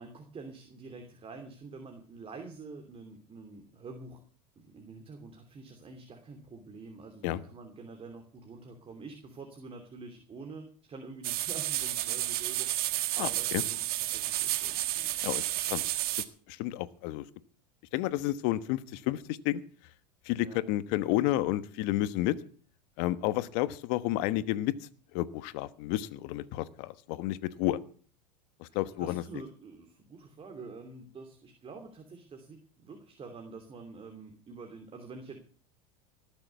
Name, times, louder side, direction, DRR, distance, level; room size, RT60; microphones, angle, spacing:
voice 1, 0.0-4.2 4.6-12.7 13.1-15.1 20.4-20.6 28.7-35.4, right 4 dB, 25° right, 4 dB, 2.9 m, -47 dB
sound 1, 11.2-16.2, right 15 dB, 50° right, 1.5 m, -31 dB
voice 2, 16.5-17.2 17.9-19.6 20.2-22.4 23.0-24.7 25.1-27.8 28.6-29.2, left 15 dB, 60° left, 14 dB, 1.2 m, -30 dB
18.5 x 7.0 x 8.2 m, 0.43 s
hypercardioid pair, 90°, 21 cm